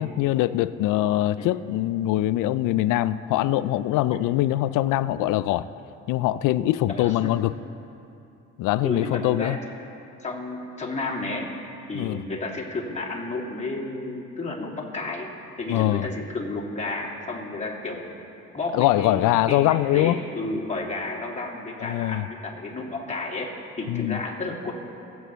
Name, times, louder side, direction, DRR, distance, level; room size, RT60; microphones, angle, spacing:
voice 1, 0.0-5.7 6.1-7.5 8.6-9.6 11.9-12.2 15.7-16.1 18.7-20.2 21.8-22.3 23.9-24.2, left 14 dB, 75° left, 16 dB, 0.5 m, -23 dB
voice 2, 6.9-7.3 8.8-9.6 10.2-11.5 11.9-15.3 15.6-23.5 23.8-24.7, left 2 dB, 20° left, -3 dB, 2.6 m, -32 dB
20.0 x 8.3 x 3.1 m, 2.8 s
supercardioid pair, 65°, 32 cm